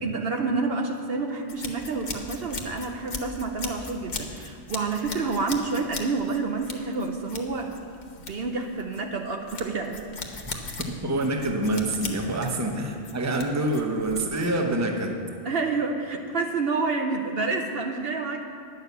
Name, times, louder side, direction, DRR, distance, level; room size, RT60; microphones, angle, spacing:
voice 1, 0.0-7.7 8.2-10.4 15.4-18.4, right 3 dB, 60° right, 3 dB, 0.9 m, -29 dB
sound 1, 1.5-14.6, left 4 dB, 40° left, 1.0 m, -39 dB
voice 2, 10.5-15.2, right 1 dB, 15° right, 3 dB, 0.8 m, -27 dB
10.5 x 6.7 x 8.2 m, 2.3 s
omnidirectional pair, 1.3 m